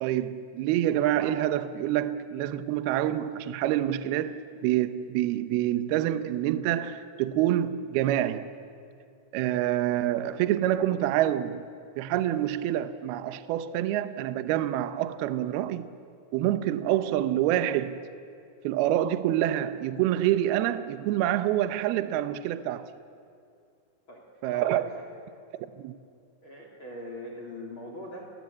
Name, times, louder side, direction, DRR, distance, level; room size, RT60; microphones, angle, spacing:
voice 1, 0.0-8.5 9.3-11.7 12.0-15.9 16.3-18.0 18.6-22.9 24.4-24.8 25.5-26.0, right 12 dB, 75° right, 2.4 m, -27 dB
voice 2, 24.5-25.1 26.4-28.3, left 1 dB, 30° left, 3.0 m, -41 dB
30.0 x 19.5 x 8.4 m
omnidirectional pair, 5.3 m